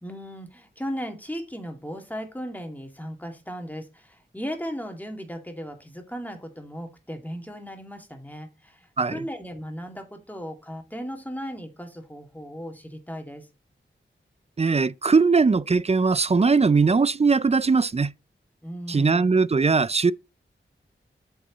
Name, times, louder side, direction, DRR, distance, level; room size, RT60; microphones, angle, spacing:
voice 1, 0.0-13.5 18.6-19.4, equal, 10° left, 2.3 m, -36 dB
voice 2, 14.6-18.1 18.9-20.1, right 4 dB, 30° right, 0.4 m, -20 dB
8.1 x 6.3 x 4.0 m
wide cardioid pair, 65°, 21 cm